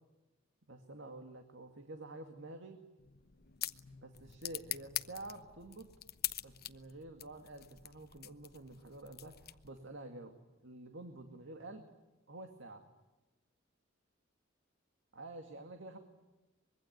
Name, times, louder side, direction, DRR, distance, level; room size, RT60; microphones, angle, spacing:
voice 1, 0.7-2.8 4.0-5.9 6.4-11.9 12.3-12.9 15.1-16.0, right 2 dB, 65° right, 6 dB, 2.2 m, -49 dB
sound 1, 3.0-9.9, left 13 dB, 50° left, 1.0 m, -44 dB
24.5 x 22.5 x 9.3 m, 1.1 s
head